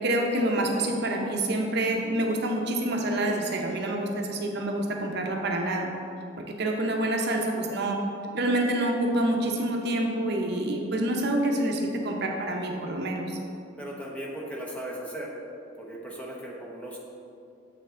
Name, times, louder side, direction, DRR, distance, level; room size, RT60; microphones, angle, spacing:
voice 1, 0.0-5.9 6.6-8.0 8.3-13.4, right 1 dB, 60° right, 1 dB, 0.8 m, -27 dB
voice 2, 13.8-15.3 15.8-17.0, right 1 dB, 5° left, -3 dB, 0.9 m, -37 dB
7.6 x 5.5 x 3.7 m, 2.6 s
head